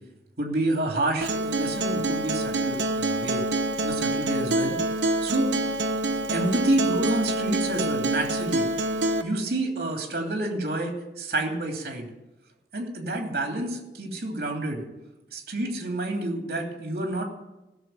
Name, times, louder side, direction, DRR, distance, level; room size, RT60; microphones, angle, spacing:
voice 1, 0.4-3.4 3.8-4.8 5.2-5.5 6.3-8.7 9.2-12.1 12.7-14.8 15.3-17.2, right 1 dB, 55° right, 1 dB, 2.9 m, -28 dB
Acoustic guitar, 1.2-9.2, right 2 dB, 90° right, 1.1 m, -26 dB
16.5 x 6.8 x 7.7 m, 0.98 s
head